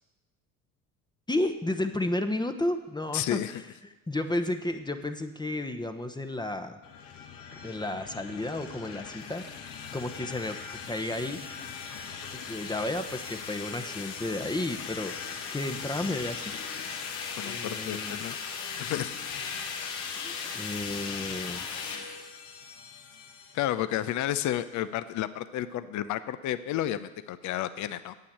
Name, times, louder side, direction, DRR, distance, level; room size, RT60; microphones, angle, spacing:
voice 1, 1.3-3.4 4.1-6.8 7.6-9.4 9.9-10.6 10.9-11.4 12.3-15.2 15.5-16.5 17.4-18.2 20.2-21.7, left 1 dB, 10° left, 7 dB, 1.0 m, -32 dB
voice 2, 3.1-3.6 17.4-18.4 18.8-19.2 23.5-28.1, left 12 dB, 45° left, 13 dB, 0.7 m, -31 dB
sound 1, 6.8-23.6, left 6 dB, 70° left, 1.7 m, -38 dB
9.2 x 8.5 x 8.2 m, 1.1 s
figure-of-eight pair, 55°, 41 cm